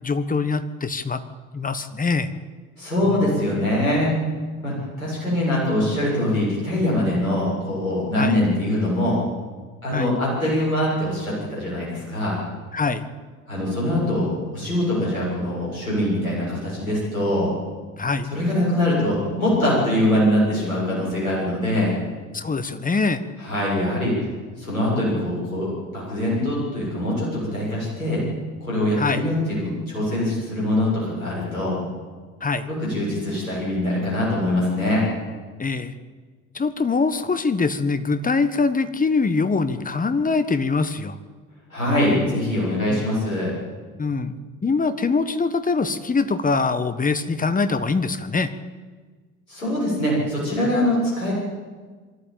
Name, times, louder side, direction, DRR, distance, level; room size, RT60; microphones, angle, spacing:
voice 1, 0.0-1.2 1.5-2.3 8.1-8.4 9.9-10.1 12.7-13.0 18.0-18.3 22.3-23.2 29.0-29.2 32.4-32.7 35.6-35.9 36.5-41.1 42.9-43.1 44.0-48.5, left 4 dB, 20° left, 11 dB, 1.5 m, -23 dB
voice 2, 2.8-4.1 4.6-9.2 9.8-12.4 13.5-17.5 18.2-22.0 23.4-24.2 24.6-28.2 28.6-31.8 32.6-35.0 41.7-43.5 49.5-51.3, left 1 dB, 80° left, -6 dB, 7.3 m, -23 dB
23.5 x 13.5 x 8.8 m, 1.4 s
figure-of-eight pair, 60°, 41 cm